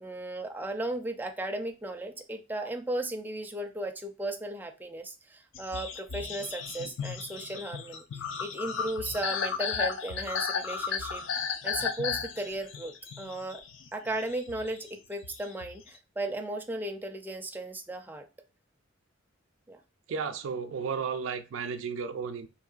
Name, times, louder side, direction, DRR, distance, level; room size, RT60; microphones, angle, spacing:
voice 1, 0.0-13.6 13.9-18.2 19.7-19.8, right 1 dB, 10° right, 0.4 m, -36 dB
sound 1, 5.5-16.0, left 6 dB, 70° left, 0.4 m, -34 dB
voice 2, 20.1-22.5, right 6 dB, 80° right, 0.4 m, -33 dB
3.7 x 2.9 x 2.4 m
head